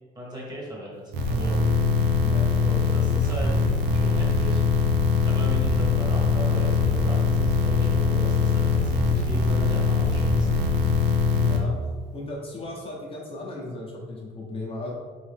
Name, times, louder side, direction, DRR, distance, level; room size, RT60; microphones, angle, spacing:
voice 1, 0.1-1.6 2.6-3.5 3.9-4.6 5.2-10.5, equal, 25° right, -4 dB, 1.3 m, -37 dB
sound 1, 1.1-11.6, left 4 dB, 85° right, 0.6 m, -22 dB
voice 2, 11.3-11.8 12.1-14.9, left 2 dB, 35° left, -3 dB, 0.7 m, -35 dB
3.9 x 2.7 x 3.4 m, 1.5 s
cardioid pair, 110°, 17 cm